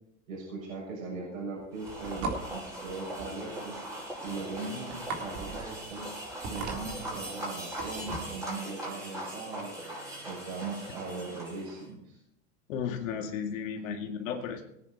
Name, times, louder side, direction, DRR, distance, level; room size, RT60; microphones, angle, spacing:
voice 1, 0.3-3.8 4.2-6.1 6.5-9.7 10.2-12.2 13.7-14.1, right 3 dB, 85° right, -3 dB, 6.9 m, -39 dB
sound 1, 1.6-8.4, right 4 dB, 45° right, 3.4 m, -39 dB
sound 2, 1.7-11.8, right 1 dB, 10° right, 5.7 m, -40 dB
voice 2, 12.7-14.7, left 7 dB, 75° left, 3 dB, 2.4 m, -34 dB
19.0 x 10.0 x 4.3 m, 0.80 s
hypercardioid pair, 115°, 39 cm